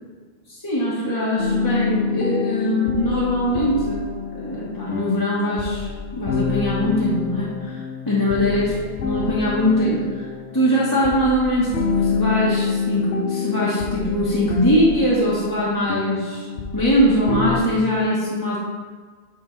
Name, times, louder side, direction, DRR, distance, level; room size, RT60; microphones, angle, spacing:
voice 1, 0.5-7.8 8.1-10.3 10.5-16.5 16.7-18.6, equal, 20° left, -8 dB, 1.3 m, -22 dB
sound 1, 1.4-17.6, left 5 dB, 80° left, 1.0 m, -27 dB
8.3 x 3.8 x 3.9 m, 1.4 s
omnidirectional pair, 1.1 m